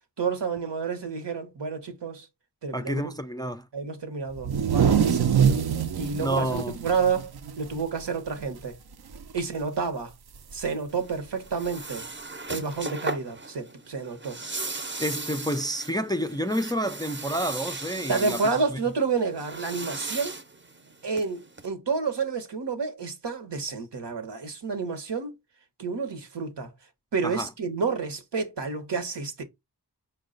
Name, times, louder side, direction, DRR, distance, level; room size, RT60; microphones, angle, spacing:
voice 1, 0.2-2.3 2.6-3.1 3.7-5.6 6.0-7.3 7.6-8.8 9.3-10.1 10.5-12.0 12.5-14.4 18.1-20.4 21.0-25.3 25.8-26.7 27.1-29.4, right 5 dB, 85° right, 1.0 m, -30 dB
voice 2, 2.7-3.7 6.2-6.8 15.0-18.4 18.7-18.8 27.2-27.5, equal, 10° left, 0.3 m, -29 dB
sound 1, 4.3-8.1 8.4-8.6 8.9-9.4 10.5-10.6 11.6-11.7, right 8 dB, 65° right, 0.6 m, -24 dB
sound 2, 10.9-21.7, right 3 dB, 30° right, 0.6 m, -37 dB
4.8 x 2.2 x 3.7 m
wide cardioid pair, 50°, 41 cm